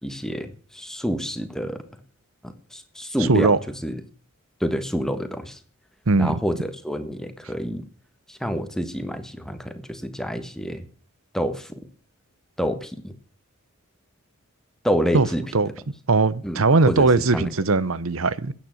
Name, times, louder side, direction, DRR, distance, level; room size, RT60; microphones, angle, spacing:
voice 1, 0.0-1.8 2.7-3.5 3.8-4.0 4.6-5.6 6.2-7.8 8.3-10.8 11.3-11.8 12.6-13.1 14.8-15.4 16.4-17.1 17.3-17.5, equal, ahead, 1.5 m, -28 dB
voice 2, 3.2-3.6 6.1-6.3 15.1-15.3 15.5-15.7 16.1-18.5, right 3 dB, 70° right, 0.9 m, -19 dB
13.5 x 9.2 x 6.4 m
head